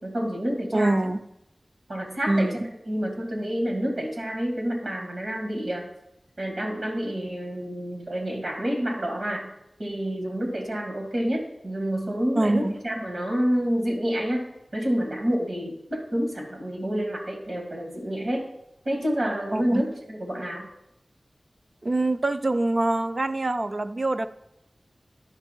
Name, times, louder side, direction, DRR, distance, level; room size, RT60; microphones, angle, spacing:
voice 1, 0.0-1.0 1.9-2.5 2.9-5.9 6.4-9.5 9.8-18.4 18.8-20.7, equal, 75° right, 1 dB, 2.2 m, -28 dB
voice 2, 0.7-1.2 2.3-2.6 12.4-12.7 19.5-19.9 21.8-24.3, right 2 dB, 45° right, 9 dB, 0.5 m, -24 dB
11.0 x 5.6 x 4.6 m, 0.84 s
wide cardioid pair, 80°, 0 cm